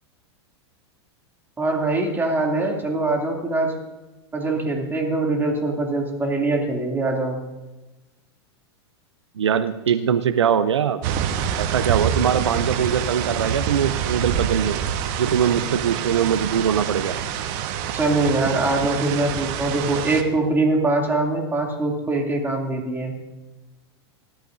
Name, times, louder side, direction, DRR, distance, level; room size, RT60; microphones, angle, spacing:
voice 1, 1.6-3.7 4.3-7.4 17.9-23.1, right 2 dB, 15° right, 0 dB, 2.7 m, -23 dB
voice 2, 9.4-11.0 11.6-14.8 15.2-17.2, right 8 dB, 90° right, 13 dB, 0.6 m, -22 dB
sound 1, 11.0-20.2, right 9 dB, 55° right, 1.2 m, -26 dB
19.0 x 12.5 x 2.7 m, 1.1 s
hypercardioid pair, 110°, 14 cm